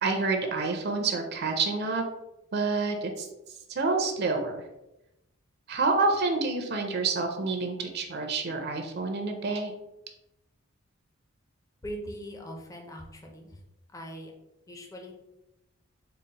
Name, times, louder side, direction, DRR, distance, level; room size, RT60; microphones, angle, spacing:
voice 1, 0.0-2.1 2.5-3.3 3.7-4.6 5.7-9.7, right 3 dB, 50° right, 3 dB, 0.5 m, -28 dB
voice 2, 11.8-13.6 13.9-14.3 14.7-15.1, equal, 15° left, 1 dB, 0.5 m, -41 dB
3.9 x 2.0 x 4.0 m, 0.92 s
head